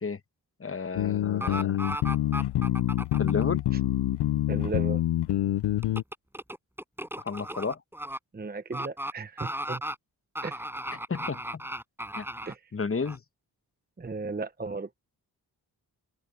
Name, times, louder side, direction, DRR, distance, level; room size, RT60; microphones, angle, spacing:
voice 1, 0.6-1.8 3.2-3.6 7.2-7.8 10.9-11.4 12.2-12.3 12.7-13.2, left 5 dB, 35° left, 1.3 m, -32 dB
sound 1, 1.0-6.0, left 13 dB, 85° left, 0.8 m, -26 dB
sound 2, 1.4-3.4 5.8-8.2 8.7-9.1 9.4-9.9 10.4-12.5 13.1-13.2, right 1 dB, 5° right, 7.4 m, -35 dB
voice 2, 4.5-5.0 8.3-9.8 10.4-10.6 12.5-12.6 14.0-14.9, right 3 dB, 25° right, 0.9 m, -35 dB
cardioid pair, 50°, 39 cm